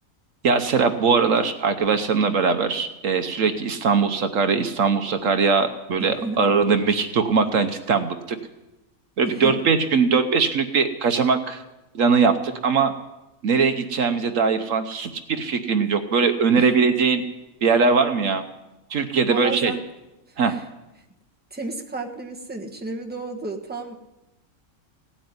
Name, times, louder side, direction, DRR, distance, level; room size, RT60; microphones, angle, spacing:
voice 1, 0.4-8.4 9.2-11.6 11.9-12.9 13.4-17.2 17.6-18.4 18.9-19.7 20.4-20.5, right 5 dB, 65° right, 8 dB, 1.2 m, -21 dB
voice 2, 6.0-6.4 9.2-9.5 16.5-16.7 19.3-19.8 20.3-20.6 21.5-24.0, right 2 dB, 5° right, 1 dB, 1.3 m, -32 dB
16.5 x 8.7 x 9.5 m, 1.0 s
omnidirectional pair, 1.5 m